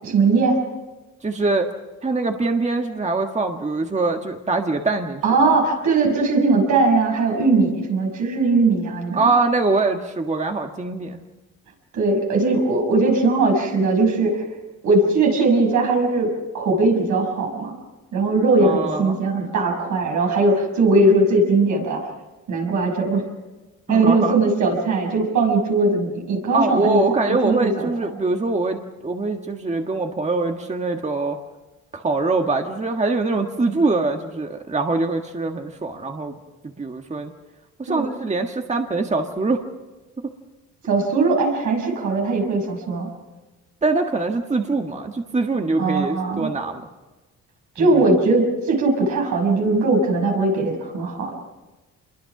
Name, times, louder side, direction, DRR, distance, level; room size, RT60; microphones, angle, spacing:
voice 1, 0.0-0.6 5.2-9.2 11.9-14.4 14.8-17.7 18.1-22.0 22.5-23.2 23.9-27.9 37.9-38.1 40.8-43.1 45.8-46.5 47.8-51.3, right 3 dB, 75° right, 1 dB, 6.2 m, -19 dB
voice 2, 1.2-1.7 2.0-5.2 9.2-11.2 18.6-19.2 23.9-24.4 26.5-31.4 31.9-36.4 36.6-37.3 37.8-39.6 40.2-40.3 43.8-46.9 47.8-48.0, right 3 dB, 25° right, 4 dB, 1.6 m, -23 dB
26.5 x 22.5 x 6.0 m, 1.2 s
cardioid pair, 90°, 30 cm